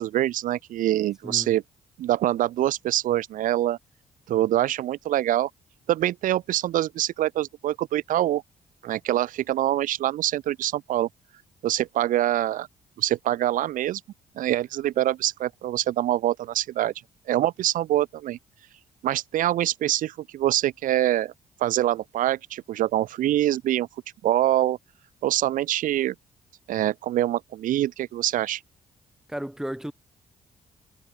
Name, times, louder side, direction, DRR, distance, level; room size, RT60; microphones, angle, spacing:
voice 1, 0.0-1.6 2.0-3.8 4.3-5.5 5.9-8.4 8.8-11.1 11.6-12.7 13.0-14.0 14.4-16.9 17.3-18.4 19.0-21.3 21.6-23.9 24.2-24.8 25.2-26.1 26.7-28.6, right 13 dB, 70° right, 0.4 m, -24 dB
voice 2, 29.3-29.9, right 1 dB, 5° right, 2.0 m, -33 dB
supercardioid pair, 70°, 14 cm